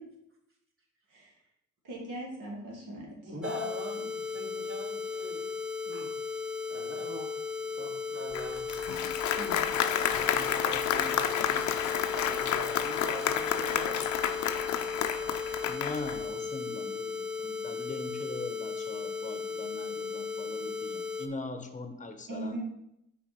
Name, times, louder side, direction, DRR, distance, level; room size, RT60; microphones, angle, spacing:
voice 1, 1.8-3.1 22.3-22.6, right 2 dB, 65° right, -2 dB, 2.3 m, -39 dB
voice 2, 3.2-5.5 5.9-6.4 6.7-7.3 7.6-9.1 9.4-11.8 12.1-14.1, equal, 40° right, 0 dB, 2.1 m, -42 dB
sound 1, 3.4-21.3, left 5 dB, ahead, 0.5 m, -36 dB
Applause, 8.3-16.2, left 9 dB, 60° left, 0.6 m, -30 dB
voice 3, 15.6-22.6, left 3 dB, 20° left, 7 dB, 0.9 m, -41 dB
5.8 x 4.5 x 4.3 m, 0.80 s
cardioid pair, 90°, 34 cm